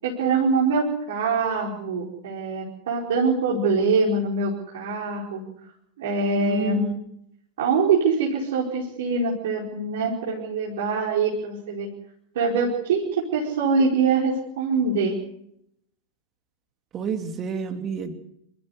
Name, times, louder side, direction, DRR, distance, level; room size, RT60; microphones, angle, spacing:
voice 1, 0.0-5.4 6.0-6.9 7.6-11.9 12.3-15.1, right 4 dB, 55° right, -3 dB, 4.8 m, -24 dB
voice 2, 6.4-7.0 16.9-18.2, right 6 dB, 25° right, 7 dB, 2.9 m, -29 dB
27.0 x 14.5 x 8.3 m, 0.74 s
figure-of-eight pair, 90°, 0 cm